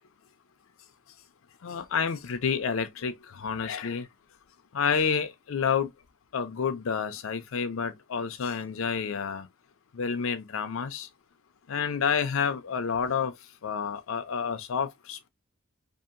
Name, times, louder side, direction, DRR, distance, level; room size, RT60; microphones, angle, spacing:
voice 1, 1.6-4.1 4.7-5.9 6.3-9.5 9.9-11.1 11.7-13.3 13.6-15.3, left 6 dB, 70° left, 0.4 m, -29 dB
2.7 x 2.4 x 2.4 m
head